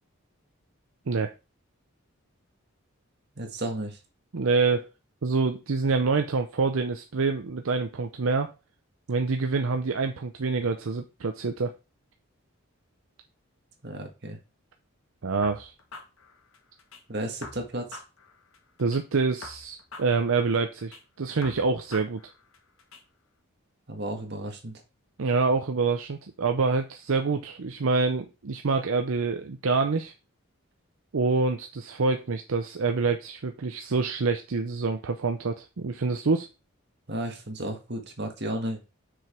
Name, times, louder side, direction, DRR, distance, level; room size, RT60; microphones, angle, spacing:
voice 1, 3.4-4.0 13.8-14.4 17.1-18.0 23.9-24.8 37.1-38.8, right 1 dB, 50° right, 3 dB, 1.7 m, -33 dB
voice 2, 4.3-4.9 5.2-8.5 9.1-11.7 15.2-15.7 18.8-22.2 25.2-30.1 31.1-36.5, right 4 dB, 70° right, 6 dB, 0.6 m, -26 dB
sound 1, 15.4-17.0 17.4-19.0 19.4-21.0 21.4-23.0, left 3 dB, 75° left, 1.5 m, -46 dB
6.3 x 5.0 x 4.5 m, 0.29 s
head